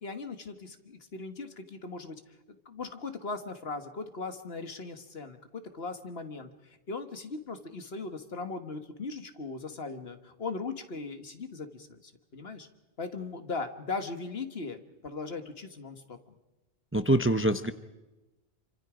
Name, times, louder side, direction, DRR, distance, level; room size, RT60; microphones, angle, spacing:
voice 1, 0.0-2.2 2.7-12.7 13.0-16.2, left 3 dB, 65° left, 8 dB, 1.8 m, -39 dB
voice 2, 16.9-17.7, right 1 dB, 15° right, 11 dB, 0.7 m, -24 dB
27.0 x 25.5 x 5.1 m, 1.1 s
omnidirectional pair, 1.1 m